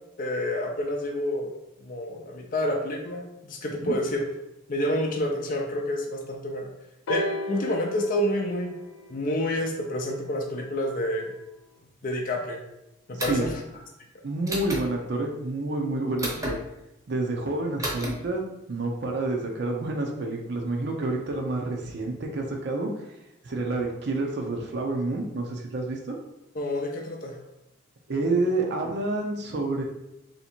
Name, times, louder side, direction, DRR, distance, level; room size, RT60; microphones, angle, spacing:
voice 1, 0.2-1.5 1.8-4.2 4.7-6.7 7.1-8.7 9.1-11.3 12.0-12.6 13.1-13.5 16.3-16.4 26.6-27.3, left 1 dB, 40° left, 0 dB, 0.5 m, -28 dB
sound 1, 7.1-10.9 11.8-11.9, left 1 dB, 90° left, 0.5 m, -36 dB
voice 2, 13.1-13.5 14.2-16.6 17.1-18.4 18.7-22.9 23.4-26.2 28.1-29.8, right 2 dB, 55° right, 1 dB, 0.5 m, -28 dB
sound 2, 13.2-13.5 14.5-14.8 16.2-16.5 17.8-18.1, right 1 dB, 15° right, 0.8 m, -31 dB
3.3 x 2.8 x 4.3 m, 0.89 s
head